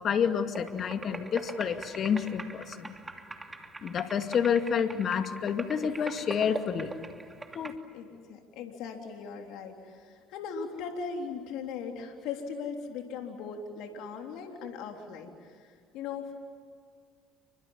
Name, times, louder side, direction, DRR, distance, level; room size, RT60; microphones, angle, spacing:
voice 1, 0.0-3.0 3.8-6.9 7.5-7.7, left 7 dB, 50° left, 7 dB, 2.4 m, -29 dB
sound 1, 0.5-7.7, right 2 dB, 15° right, 3.0 m, -42 dB
voice 2, 7.9-16.3, left 5 dB, 70° left, 3 dB, 3.5 m, -39 dB
29.5 x 25.0 x 7.3 m, 2.1 s
hypercardioid pair, 75°, 0 cm